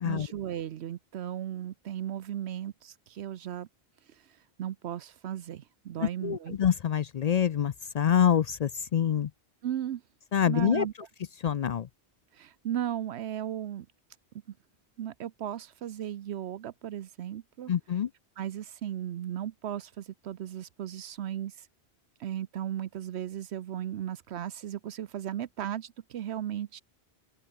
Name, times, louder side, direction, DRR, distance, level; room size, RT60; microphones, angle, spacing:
voice 1, 0.0-3.7 4.1-4.2 4.6-6.6 9.6-10.0 10.5-10.9 12.3-13.9 15.0-17.7 18.4-21.7 22.2-26.8, right 11 dB, 80° right, 1.0 m, -36 dB
voice 2, 6.0-9.3 10.3-10.9 11.4-11.9 17.7-18.1, left 9 dB, 60° left, 0.4 m, -26 dB
open air
omnidirectional pair, 1.1 m